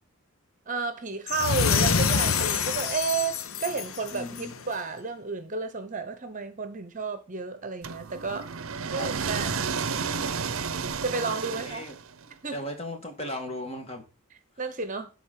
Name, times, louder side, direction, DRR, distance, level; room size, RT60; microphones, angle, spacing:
voice 1, 0.7-8.5 8.9-9.8 11.0-11.8 12.4-12.6 14.6-15.1, right 4 dB, 35° right, 1.0 m, -32 dB
sound 1, 1.3-4.6, left 6 dB, 65° left, 0.8 m, -26 dB
voice 2, 4.1-4.5 9.0-9.1 11.5-12.0 12.5-14.0, left 1 dB, 25° left, 2.1 m, -36 dB
sound 2, 7.8-12.2, right 5 dB, 65° right, 0.7 m, -31 dB
12.0 x 4.1 x 7.5 m
head